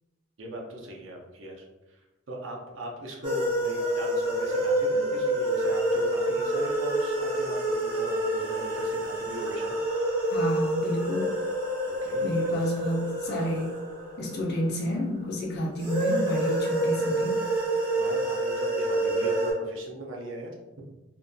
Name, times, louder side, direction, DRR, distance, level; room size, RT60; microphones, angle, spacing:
voice 1, 0.4-9.8 12.0-12.7 17.9-20.5 20.8-20.9, right 2 dB, 65° right, -1 dB, 0.5 m, -39 dB
sound 1, 3.2-15.0 15.8-19.5, right 1 dB, 20° right, 0.9 m, -27 dB
voice 2, 10.3-11.3 12.2-13.7 14.2-17.4, equal, 50° left, -3 dB, 0.5 m, -30 dB
2.5 x 2.5 x 2.2 m, 1.1 s
head